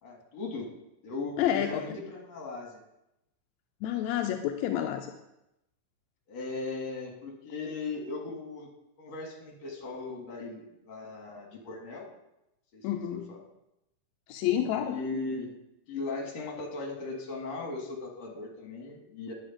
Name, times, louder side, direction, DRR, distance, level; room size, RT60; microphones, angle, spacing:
voice 1, 0.0-0.7 1.0-2.8 6.3-8.7 9.0-12.1 12.7-13.4 14.7-15.6 15.9-19.3, left 3 dB, 60° left, 1 dB, 2.9 m, -38 dB
voice 2, 1.4-1.8 3.8-5.1 12.8-13.2 14.3-15.0, left 11 dB, 80° left, 5 dB, 1.8 m, -29 dB
10.0 x 7.7 x 5.1 m, 0.89 s
omnidirectional pair, 3.6 m